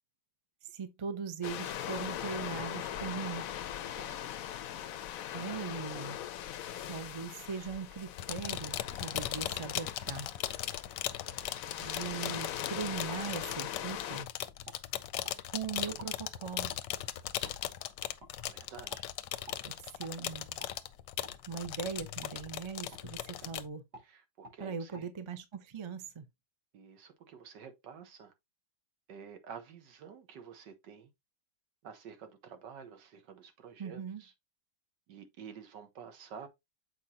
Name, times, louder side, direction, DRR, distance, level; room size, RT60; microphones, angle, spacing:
voice 1, 0.7-3.4 5.3-6.2 6.9-10.3 11.8-14.3 15.5-16.7 19.6-20.6 21.5-23.8 24.6-26.3 33.8-34.2, right 6 dB, 40° right, 0.4 m, -40 dB
sound 1, 1.4-14.2, left 11 dB, 70° left, 0.9 m, -41 dB
voice 2, 3.8-4.2 18.4-19.0 24.0-25.1 26.7-28.3 29.1-31.1 31.8-34.3 35.1-36.5, right 7 dB, 80° right, 1.8 m, -50 dB
sound 2, 8.2-23.7, left 12 dB, 85° left, 1.3 m, -38 dB
sound 3, 13.5-13.6 14.1-14.2 14.6-15.4 15.9-16.1 16.7-16.8 17.4-17.6 18.2-18.3 18.9-19.0 19.5-19.6 20.0-20.2 20.6-20.7 21.2-21.4 22.2-22.4 22.9-23.0 23.4-23.5 23.9-24.1 24.4-24.6 24.9-25.0, right 1 dB, 60° right, 3.5 m, -51 dB
7.2 x 4.8 x 2.7 m
omnidirectional pair, 1.9 m